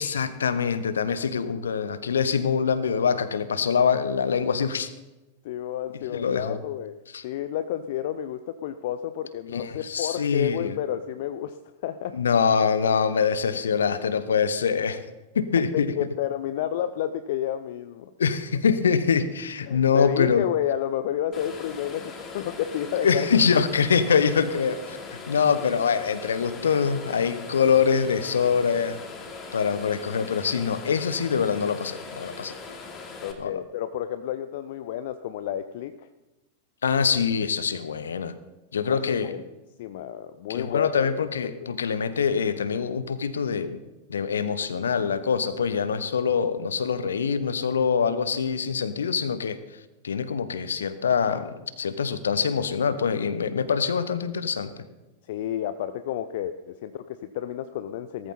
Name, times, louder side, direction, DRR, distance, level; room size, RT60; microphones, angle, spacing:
voice 1, 0.0-4.9 6.1-6.6 7.1-7.2 9.5-10.8 12.1-15.0 15.3-15.9 18.2-20.5 23.0-29.0 29.5-32.5 33.4-33.6 36.8-38.3 38.7-39.3 40.5-43.8 44.1-49.6 50.0-54.7, left 6 dB, 70° left, 13 dB, 1.1 m, -24 dB
voice 2, 5.4-7.0 7.2-11.6 11.8-12.2 15.7-18.1 19.7-23.3 33.2-36.1 38.8-39.4 39.8-41.3 41.6-41.7 55.3-58.3, left 11 dB, 55° left, 11 dB, 0.6 m, -31 dB
sound 1, 21.3-33.3, left 4 dB, 30° left, 2.7 m, -40 dB
18.0 x 14.0 x 4.3 m, 1.1 s
figure-of-eight pair, 90°, 0 cm